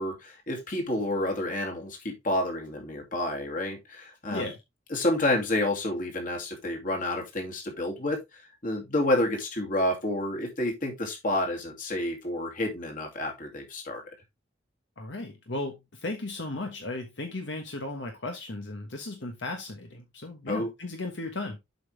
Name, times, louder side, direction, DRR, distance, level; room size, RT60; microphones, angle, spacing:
voice 1, 0.0-4.5 4.9-8.2 8.6-14.0 20.5-20.7, left 1 dB, 45° left, 2.6 m, -29 dB
voice 2, 15.0-21.6, left 2 dB, 75° left, 1.3 m, -36 dB
7.7 x 5.5 x 3.3 m
head